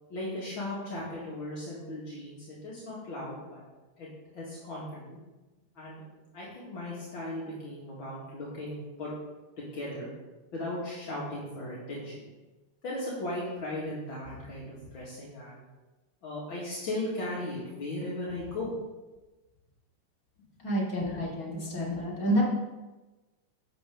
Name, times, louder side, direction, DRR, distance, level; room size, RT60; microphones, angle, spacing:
voice 1, 0.1-3.6 4.0-4.1 4.3-5.2 5.8-6.0 6.3-9.1 9.6-10.1 10.5-12.2 12.8-15.6 16.2-18.7, left 1 dB, 65° left, -7 dB, 2.8 m, -37 dB
voice 2, 20.6-22.4, equal, 40° left, -6 dB, 3.4 m, -29 dB
11.5 x 8.0 x 3.8 m, 1.1 s
omnidirectional pair, 2.4 m